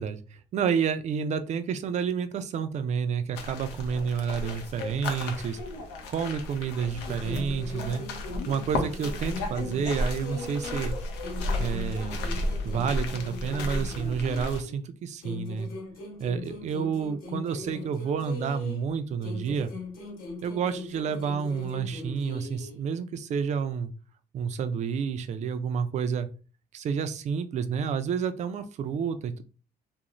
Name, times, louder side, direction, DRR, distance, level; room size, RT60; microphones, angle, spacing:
voice 1, 0.0-5.6 6.1-8.0 8.5-11.0 11.6-15.7 16.2-19.7 20.4-23.9 24.3-26.3 26.7-29.4, right 6 dB, 45° right, 10 dB, 0.4 m, -30 dB
sound 1, 3.3-14.6, left 1 dB, 90° left, 0.6 m, -34 dB
sound 2, 7.2-10.9 11.2-14.8 15.2-18.9 19.2-22.8, left 3 dB, 60° left, 1.0 m, -40 dB
2.5 x 2.0 x 2.9 m, 0.37 s
cardioid pair, 110°, 17 cm